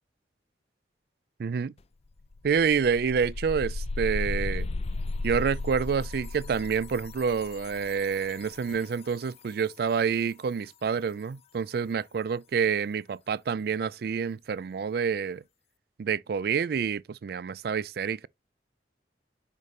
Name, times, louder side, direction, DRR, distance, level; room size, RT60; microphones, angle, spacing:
voice 1, 1.4-1.7 2.4-4.7 5.2-15.4 16.0-18.3, right 6 dB, 60° right, 0.3 m, -28 dB
sound 1, 1.8-1.9 2.2-9.0, left 2 dB, 35° left, 0.4 m, -35 dB
6.6 x 5.1 x 3.2 m
head